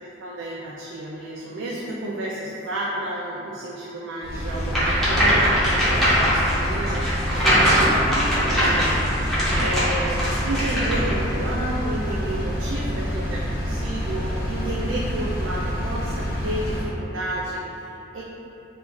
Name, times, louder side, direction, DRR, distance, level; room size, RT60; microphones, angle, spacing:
voice 1, 0.2-18.2, right 1 dB, 90° right, -5 dB, 0.3 m, -31 dB
Engine, 4.2-16.9, equal, 55° left, 0.5 m, -27 dB
sound 1, 4.7-11.1, equal, ahead, 0.7 m, -21 dB
2.4 x 2.3 x 3.0 m, 3.0 s
head